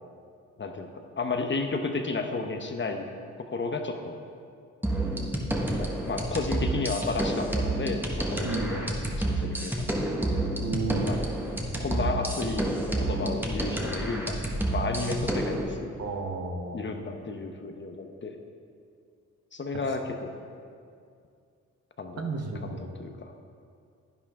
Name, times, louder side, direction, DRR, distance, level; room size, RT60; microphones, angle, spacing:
voice 1, 0.6-0.9 1.2-3.1 3.5-4.1 5.7-10.1 11.0-11.2 11.8-12.6 13.0-14.4 14.7-16.0 16.7-18.4 19.5-20.3 22.0-23.3, left 3 dB, 35° left, 5 dB, 0.9 m, -32 dB
sound 1, 4.8-15.6, right 1 dB, 5° right, 1.5 m, -29 dB
voice 2, 8.4-8.8 10.6-11.1 16.0-16.8 22.2-22.9, right 3 dB, 55° right, 2 dB, 1.2 m, -32 dB
10.5 x 9.8 x 3.7 m, 2.3 s
cardioid pair, 75°, 31 cm